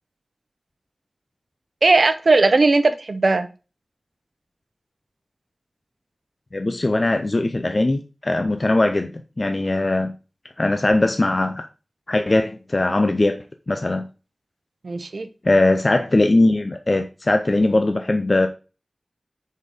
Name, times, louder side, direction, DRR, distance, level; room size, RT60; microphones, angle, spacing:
voice 1, 1.8-3.5 14.8-15.3, right 3 dB, 75° right, 10 dB, 0.7 m, -17 dB
voice 2, 6.5-9.1 9.4-10.1 10.6-11.6 12.1-13.4 13.7-14.1 15.4-18.5, left 2 dB, 45° left, 6 dB, 0.6 m, -20 dB
5.3 x 4.4 x 4.9 m, 0.33 s
wide cardioid pair, 65°, 0 cm